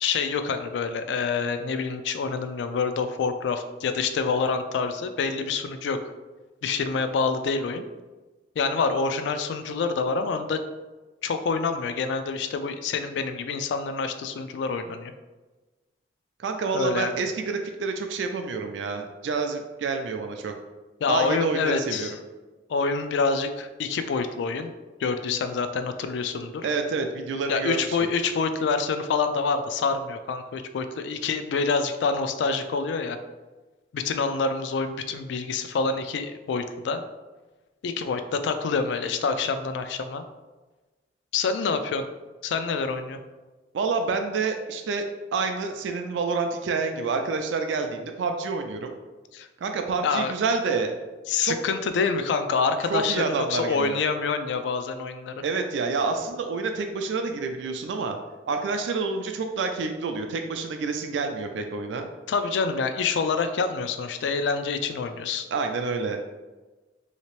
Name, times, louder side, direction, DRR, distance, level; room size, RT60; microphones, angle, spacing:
voice 1, 0.0-6.0 6.6-7.8 8.6-10.6 11.2-15.1 16.7-17.1 21.0-22.1 22.7-24.7 25.0-26.7 27.5-33.2 33.9-37.0 37.8-40.2 41.3-42.1 42.4-43.2 49.3-49.5 50.0-50.3 51.3-55.3 62.3-65.5, left 4 dB, 80° left, 9 dB, 0.3 m, -27 dB
voice 2, 16.4-20.5 21.1-22.2 26.6-28.0 43.7-45.1 45.3-49.0 49.6-50.9 51.4-51.5 52.9-54.0 55.4-58.2 58.5-62.1 65.5-66.2, right 4 dB, 90° right, 5 dB, 0.3 m, -28 dB
3.2 x 2.8 x 3.0 m, 1.2 s
head